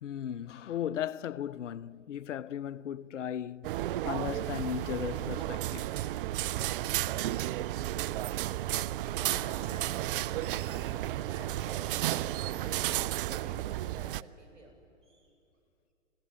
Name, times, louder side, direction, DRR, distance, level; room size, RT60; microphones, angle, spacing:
voice 1, 0.0-6.1, left 9 dB, 75° left, 0.6 m, -37 dB
sound 1, 3.6-14.2, right 14 dB, 45° right, 0.5 m, -33 dB
voice 2, 9.1-14.7 15.0-15.3, right 2 dB, 75° right, 7.8 m, -50 dB
28.0 x 17.5 x 9.3 m
hypercardioid pair, 120°, 37 cm